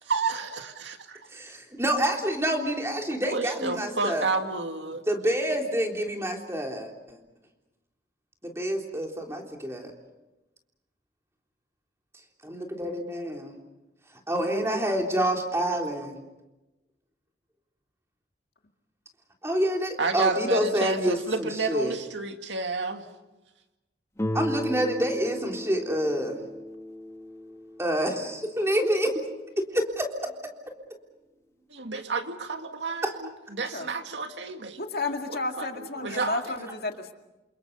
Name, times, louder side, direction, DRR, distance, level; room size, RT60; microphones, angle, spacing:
voice 1, 0.1-1.2 3.2-5.0 20.0-23.1 31.7-34.8 35.3-36.4, right 3 dB, 90° right, 5 dB, 2.2 m, -30 dB
voice 2, 1.3-4.3 5.1-7.2 8.4-9.9 12.4-13.6 14.3-16.2 19.4-22.0 24.3-26.4 27.8-29.2 29.6-30.1 33.0-33.1 36.1-36.2, equal, 15° right, 1 dB, 3.5 m, -27 dB
Guitar, 24.2-29.0, left 1 dB, 15° left, 1.7 m, -35 dB
voice 3, 34.8-37.1, left 3 dB, 60° left, 4 dB, 2.2 m, -32 dB
29.0 x 27.5 x 5.5 m, 1.0 s
head